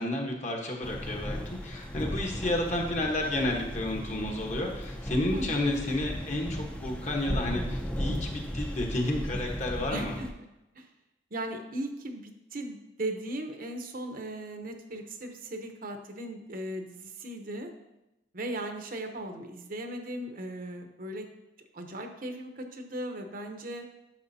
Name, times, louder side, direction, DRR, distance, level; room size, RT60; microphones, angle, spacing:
voice 1, 0.0-10.2, left 1 dB, 40° left, 1 dB, 1.2 m, -31 dB
sound 1, 0.8-10.3, equal, 5° left, 0.5 m, -36 dB
voice 2, 5.3-5.6 9.9-10.3 10.7-10.9 11.3-17.7 18.3-21.3 21.7-23.9, right 1 dB, 50° right, 5 dB, 0.8 m, -37 dB
10.0 x 6.3 x 2.8 m, 0.94 s
head